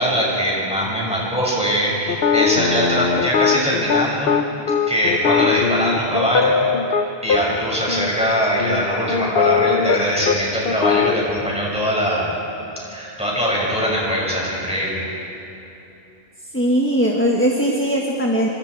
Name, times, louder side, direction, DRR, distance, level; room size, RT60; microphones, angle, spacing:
voice 1, 0.0-4.3 4.9-6.5 6.9-12.3 12.8-15.1, equal, 5° right, -5 dB, 6.4 m, -22 dB
sound 1, 2.1-7.4 7.9-8.1 8.6-10.0 10.3-10.4 10.7-11.2, left 6 dB, 65° left, 1.1 m, -19 dB
voice 2, 16.5-18.5, equal, 10° left, -1 dB, 1.5 m, -19 dB
27.0 x 25.0 x 4.8 m, 3.0 s
omnidirectional pair, 1.0 m